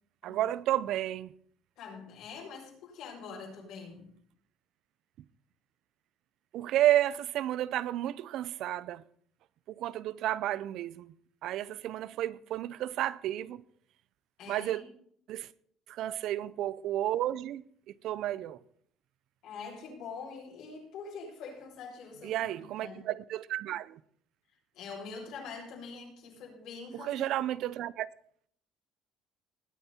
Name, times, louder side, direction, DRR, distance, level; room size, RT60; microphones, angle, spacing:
voice 1, 0.2-1.3 6.5-9.0 9.8-11.1 11.4-13.6 14.5-14.8 15.3-15.5 15.9-17.7 18.0-18.6 22.2-24.0 26.9-28.1, right 13 dB, 65° right, 0.6 m, -31 dB
voice 2, 1.8-4.1 14.4-14.9 19.4-23.1 24.7-27.3, left 5 dB, 70° left, 7.6 m, -44 dB
20.0 x 9.3 x 4.4 m
cardioid pair, 125°, 0 cm